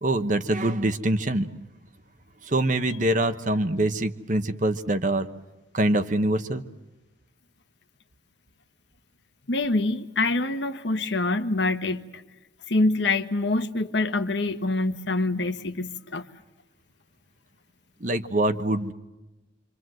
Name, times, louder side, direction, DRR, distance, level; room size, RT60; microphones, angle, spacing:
voice 1, 0.0-1.5 2.4-5.3 5.7-6.6 18.0-18.9, right 1 dB, 40° right, 9 dB, 1.2 m, -24 dB
voice 2, 9.5-12.1 12.7-16.3, left 2 dB, 65° left, 8 dB, 1.3 m, -25 dB
27.0 x 26.0 x 7.8 m, 1.1 s
head